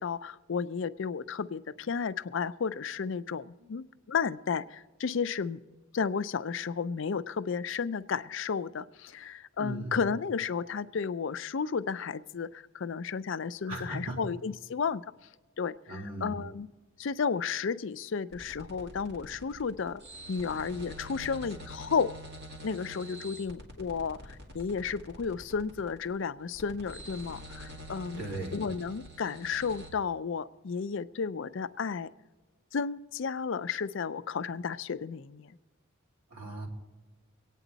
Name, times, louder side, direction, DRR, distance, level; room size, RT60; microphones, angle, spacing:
voice 1, 0.0-5.6 5.9-15.0 15.6-16.7 17.0-20.0 20.3-22.1 22.6-28.2 28.5-32.1 32.7-35.6, left 5 dB, 60° left, 13 dB, 0.4 m, -33 dB
voice 2, 9.6-9.9 13.7-14.2 15.9-16.3 28.2-28.5 36.3-36.7, right 1 dB, 90° right, -1 dB, 3.1 m, -37 dB
sound 1, 18.3-29.9, equal, 50° right, 2.4 m, -46 dB
23.0 x 9.1 x 4.0 m, 1.2 s
head